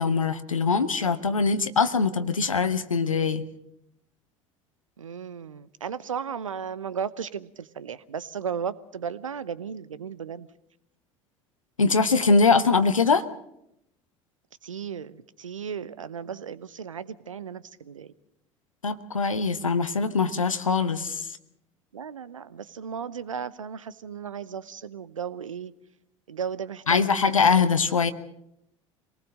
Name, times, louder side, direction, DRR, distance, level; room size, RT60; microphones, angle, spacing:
voice 1, 0.0-3.4 11.8-13.2 18.8-21.3 26.9-28.1, left 4 dB, 85° left, 11 dB, 1.0 m, -22 dB
voice 2, 5.0-10.5 14.6-18.1 21.9-25.7 26.3-27.5, right 7 dB, 80° right, 17 dB, 0.8 m, -35 dB
25.5 x 19.0 x 6.4 m, 0.80 s
figure-of-eight pair, 70°, 17 cm